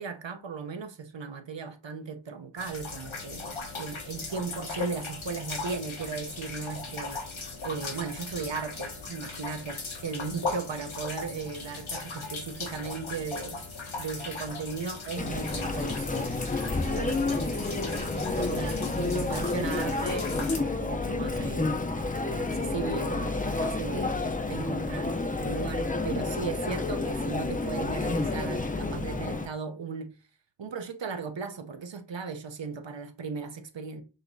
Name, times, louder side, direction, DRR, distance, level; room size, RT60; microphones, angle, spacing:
voice 1, 0.0-7.2 7.6-13.6 14.0-16.3 16.9-21.8 22.2-30.2 30.6-34.0, right 5 dB, 65° right, 0.7 m, -37 dB
sound 1, 2.6-20.6, left 3 dB, 80° left, 1.1 m, -38 dB
Chatter, 15.2-29.5, left 3 dB, 20° left, 0.5 m, -30 dB
6.4 x 2.9 x 2.6 m
wide cardioid pair, 40°, 47 cm